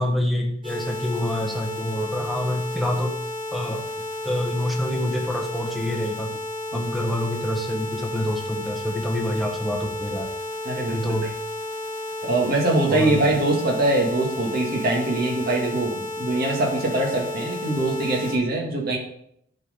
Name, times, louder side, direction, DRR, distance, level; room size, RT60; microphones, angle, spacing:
voice 1, 0.0-3.1 3.5-3.8 4.2-6.4 6.7-10.3 10.9-11.3 12.9-13.3, left 1 dB, ahead, 2 dB, 1.1 m, -26 dB
sound 1, 0.6-18.4, left 2 dB, 25° right, 3.2 m, -32 dB
voice 2, 10.7-11.0 12.2-19.0, right 2 dB, 45° right, -1 dB, 2.0 m, -23 dB
11.0 x 4.4 x 5.3 m, 0.72 s
head